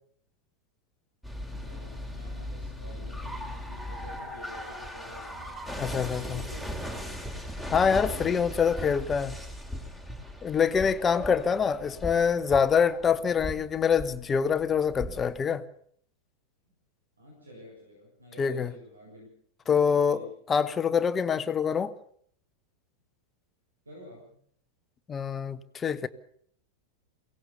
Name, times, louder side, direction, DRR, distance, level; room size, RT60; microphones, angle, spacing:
sound 1, 1.2-15.4, left 1 dB, 5° right, 3.5 m, -38 dB
voice 1, 1.6-6.9 16.7-16.8 17.2-19.3 19.6-20.3 23.9-24.3, equal, 75° right, 7.2 m, -49 dB
voice 2, 5.8-6.4 7.7-9.4 10.4-15.6 18.4-18.7 19.7-21.9 25.1-26.1, left 6 dB, 20° left, 1.1 m, -25 dB
23.0 x 17.5 x 7.0 m
figure-of-eight pair, 90°, 0 cm